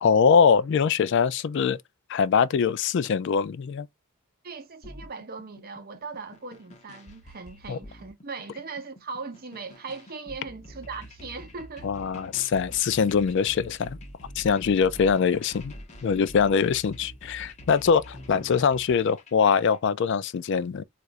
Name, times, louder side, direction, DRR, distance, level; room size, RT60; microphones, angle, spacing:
voice 1, 0.0-1.8 2.1-3.9 7.7-7.8 11.8-14.0 14.4-15.7 16.0-20.8, left 6 dB, 55° left, 0.3 m, -23 dB
voice 2, 4.4-11.9, right 4 dB, 40° right, 0.6 m, -39 dB
sound 1, 4.8-19.8, equal, 30° left, 0.8 m, -46 dB
4.2 x 2.4 x 2.5 m
head